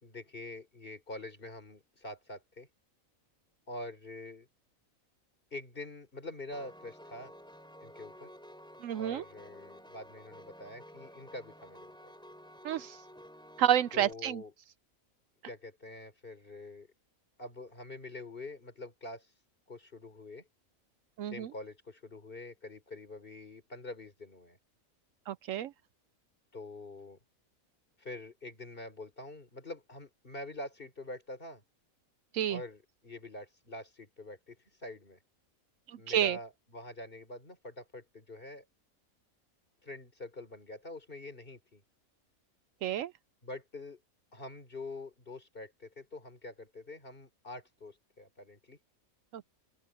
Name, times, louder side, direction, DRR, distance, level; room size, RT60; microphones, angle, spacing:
voice 1, 0.0-2.7 3.7-4.5 5.5-7.3 7.8-8.3 9.0-12.1 13.9-14.5 15.4-16.9 17.4-19.3 19.7-20.4 21.3-24.6 26.5-27.2 28.0-31.6 32.5-35.2 36.0-38.6 39.8-41.8 43.4-44.0 44.3-48.8, left 2 dB, 40° left, 3.9 m, -45 dB
Piano, 6.5-14.1, equal, 5° left, 5.4 m, -52 dB
voice 2, 8.8-9.2 12.6-13.0 13.6-14.4 21.2-21.5 25.3-25.7 32.3-32.6 36.1-36.4 42.8-43.1 49.3-49.4, right 10 dB, 70° right, 0.9 m, -29 dB
open air
omnidirectional pair, 1.5 m